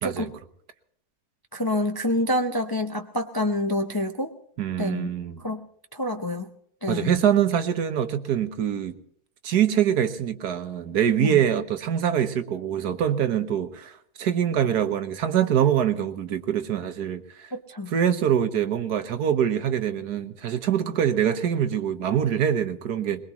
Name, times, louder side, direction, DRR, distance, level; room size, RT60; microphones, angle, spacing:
voice 1, 0.0-0.3 1.5-4.3 4.8-5.1 5.4-5.6 5.9-6.5 6.8-7.1 11.2-11.4 17.5-17.9, left 1 dB, 30° left, 0.4 m, -27 dB
voice 2, 4.6-5.5 6.9-9.0 9.4-17.5 17.9-23.2, right 9 dB, 80° right, 1.6 m, -24 dB
22.0 x 21.5 x 3.0 m
omnidirectional pair, 1.7 m